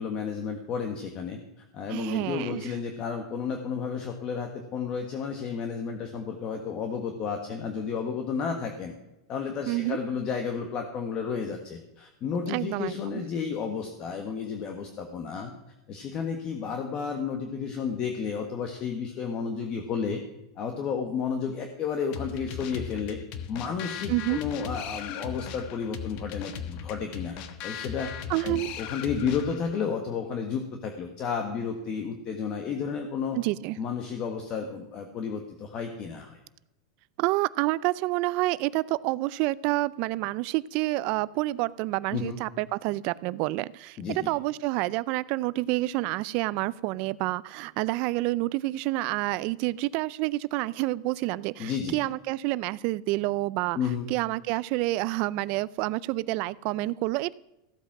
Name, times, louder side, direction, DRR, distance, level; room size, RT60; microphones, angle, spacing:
voice 1, 0.0-1.4 1.7-8.9 9.3-15.5 15.9-20.2 20.6-23.2 23.5-27.4 27.6-33.4 33.8-36.4 42.1-42.4 44.0-44.3 51.6-52.0 53.7-54.1, left 6 dB, 35° left, 4 dB, 1.4 m, -32 dB
voice 2, 1.9-2.6 9.7-10.0 12.5-13.2 24.1-24.4 28.3-28.8 33.3-33.8 37.2-57.3, right 19 dB, 50° right, 19 dB, 0.4 m, -28 dB
sound 1, 22.1-29.7, left 8 dB, 50° left, 1.2 m, -38 dB
15.0 x 8.2 x 6.1 m, 0.94 s
supercardioid pair, 145°, 2 cm